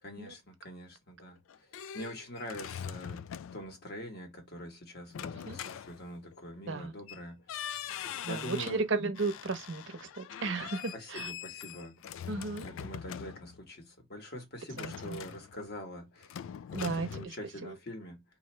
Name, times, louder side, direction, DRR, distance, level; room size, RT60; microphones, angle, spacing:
voice 1, 0.0-7.5 8.3-8.8 10.9-12.0 12.6-16.4 16.7-18.2, equal, 50° left, 1.4 m, -44 dB
sound 1, 1.3-3.8 5.1-6.4 7.1-7.2 7.5-8.8 9.1-13.7 14.7-15.9 16.2-17.2, left 9 dB, 70° left, 0.3 m, -43 dB
voice 2, 8.2-11.3 12.3-12.7 14.8-15.2 16.7-17.3 17.6-17.7, right 3 dB, 65° right, 0.8 m, -34 dB
3.1 x 2.6 x 4.3 m
head